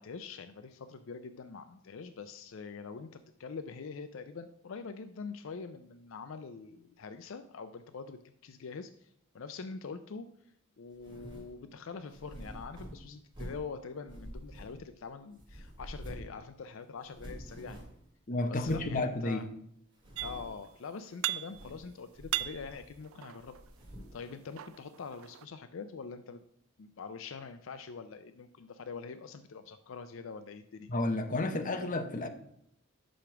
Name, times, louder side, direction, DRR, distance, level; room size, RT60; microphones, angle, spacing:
voice 1, 0.0-9.1 9.3-10.3 10.8-17.9 18.5-19.5 20.2-23.6 24.1-26.4 26.8-30.9, left 5 dB, 75° left, 0.4 m, -44 dB
sound 1, 11.0-11.5 12.1-13.7 14.1-15.0 15.4-16.4 16.6-16.7 17.0-18.0 18.6-18.9 19.4-19.5 19.9-20.6 21.4-21.9 22.1-23.0 23.4-24.2, equal, 25° right, 1.9 m, -47 dB
voice 2, 18.3-19.4 30.9-32.3, left 2 dB, 40° left, 0.8 m, -31 dB
sound 2, 20.2-20.7 20.9-21.8 22.1-23.7 24.3-25.5, right 15 dB, 85° right, 0.3 m, -38 dB
5.9 x 5.1 x 5.9 m
head